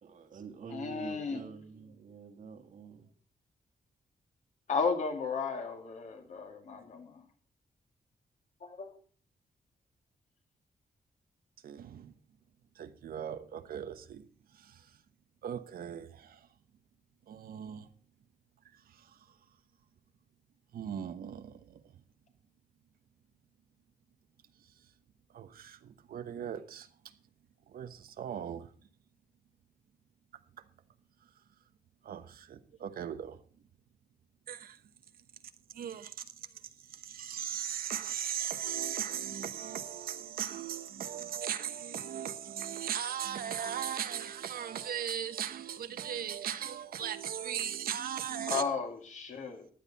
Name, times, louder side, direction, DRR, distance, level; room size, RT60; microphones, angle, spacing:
voice 1, 0.0-3.1, right 5 dB, 65° right, 1.9 m, -47 dB
voice 2, 0.7-1.4 4.7-7.2 48.5-49.7, left 5 dB, 55° left, 2.3 m, -34 dB
voice 3, 11.6-12.1 12.7-14.2 14.5-15.0 15.4-16.5 17.3-17.9 18.7-19.3 20.7-21.9 25.3-26.9 27.7-28.7 30.6-30.7 32.0-33.4 34.5-34.8 35.7-48.6, right 9 dB, 85° right, 1.1 m, -38 dB
15.0 x 10.5 x 4.2 m
wide cardioid pair, 160°, 15 cm